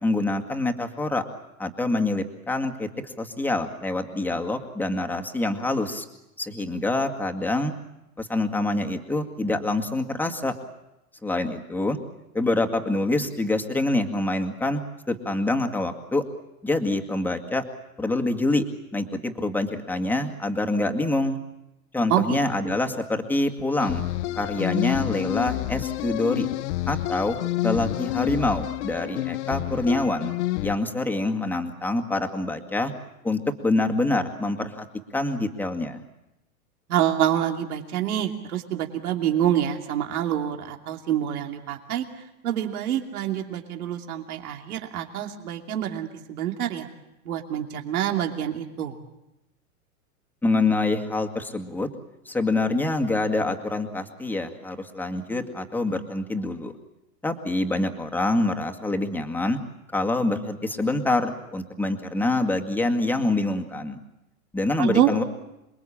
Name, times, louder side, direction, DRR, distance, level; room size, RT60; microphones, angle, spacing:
voice 1, 0.0-1.2 1.6-6.1 6.4-7.7 8.2-10.5 11.2-12.0 12.3-14.8 15.1-16.2 16.6-17.6 18.0-18.7 18.9-21.4 21.9-24.0 24.4-26.5 26.9-27.4 27.6-30.3 30.6-32.9 33.2-34.8 35.1-36.0 50.4-51.9 52.3-56.7 57.2-59.6 59.9-64.0 64.5-65.2, left 2 dB, 5° left, 4 dB, 2.0 m, -26 dB
sound 1, 23.8-30.8, left 16 dB, 50° left, 0.9 m, -28 dB
voice 2, 36.9-42.1 42.4-46.9 47.2-49.0 64.8-65.1, right 11 dB, 75° right, 3 dB, 2.9 m, -26 dB
27.5 x 22.0 x 8.7 m, 0.92 s
hypercardioid pair, 140°, 44 cm